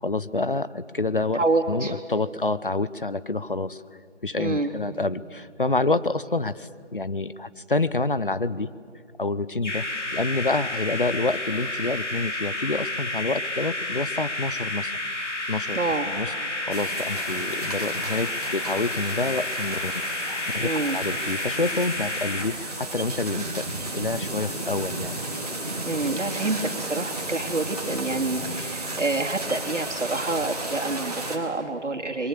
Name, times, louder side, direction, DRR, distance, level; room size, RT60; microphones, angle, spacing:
voice 1, 0.0-3.8 4.2-8.7 9.2-9.9 10.1-15.8 16.1-19.9 20.5-23.7 23.9-25.1, left 3 dB, 50° left, 15 dB, 0.7 m, -28 dB
voice 2, 1.3-2.0 4.4-4.7 15.7-16.1 20.6-21.0 25.8-32.3, right 3 dB, 85° right, 3 dB, 2.7 m, -27 dB
sound 1, 9.6-22.5, left 2 dB, 85° left, 3.1 m, -30 dB
sound 2, 16.7-31.4, right 2 dB, 35° right, 2.3 m, -33 dB
27.5 x 23.0 x 7.4 m, 2.2 s
figure-of-eight pair, 175°, 35 cm